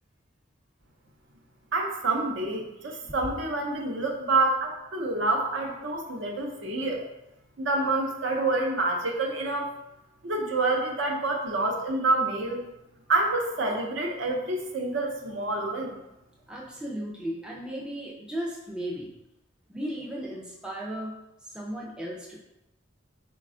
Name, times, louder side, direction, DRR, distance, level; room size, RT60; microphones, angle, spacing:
voice 1, 1.7-7.0 7.6-9.7 10.2-12.6 13.1-16.0, right 2 dB, 65° right, 1 dB, 0.6 m, -27 dB
voice 2, 16.5-19.1 19.7-21.1 21.4-22.4, right 1 dB, 5° right, -3 dB, 0.4 m, -35 dB
4.0 x 2.2 x 3.6 m, 0.91 s
head